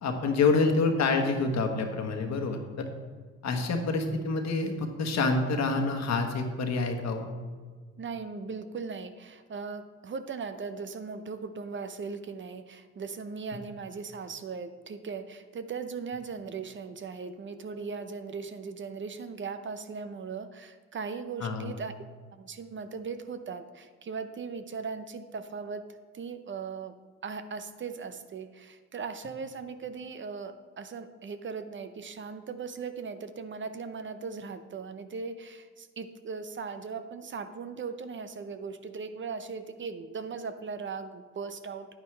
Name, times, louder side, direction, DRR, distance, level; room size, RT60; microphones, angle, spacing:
voice 1, 0.0-2.9 3.4-7.3 21.4-21.7, left 3 dB, 60° left, 4 dB, 1.4 m, -27 dB
voice 2, 8.0-21.9 22.3-25.9 26.1-26.9 27.2-41.9, right 5 dB, 40° right, 10 dB, 0.7 m, -38 dB
9.6 x 9.4 x 3.3 m, 1.5 s
cardioid pair, 90°, 30 cm